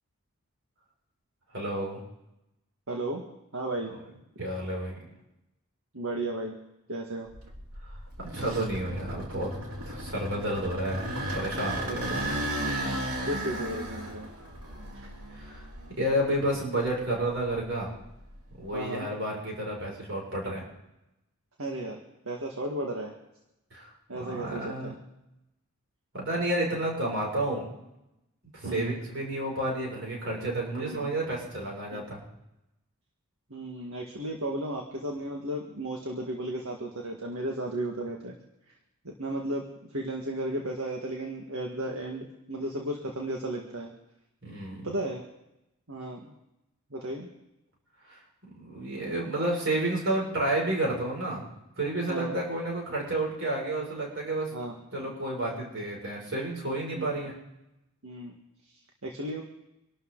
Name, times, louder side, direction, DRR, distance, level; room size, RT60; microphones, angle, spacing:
voice 1, 1.5-2.0 4.4-4.9 7.8-7.9 8.2-9.5 9.8-12.3 15.3-15.6 16.0-17.9 18.6-20.6 23.7-23.9 24.2-24.9 26.1-27.7 28.5-32.2 44.4-44.9 48.1-48.2 48.6-51.5 51.8-54.5 54.9-57.3, right 1 dB, 55° right, -2 dB, 6.4 m, -31 dB
voice 2, 2.9-3.2 3.5-3.9 5.9-6.6 6.9-7.3 11.9-12.2 13.2-14.3 14.9-15.1 18.7-19.1 21.6-22.0 22.3-23.1 24.1-24.9 28.7-28.9 30.8-31.1 31.9-32.0 33.5-38.4 39.0-39.6 39.9-43.9 44.8-45.2 45.9-46.3 46.9-47.3 52.1-52.4 54.5-54.7 55.0-55.1 57.0-57.1 58.0-58.3 58.7-59.4, right 1 dB, 70° right, 1 dB, 1.8 m, -34 dB
sound 1, 7.3-16.4 16.8-18.7, right 1 dB, 90° right, 3.6 m, -35 dB
25.5 x 12.5 x 4.0 m, 0.90 s
head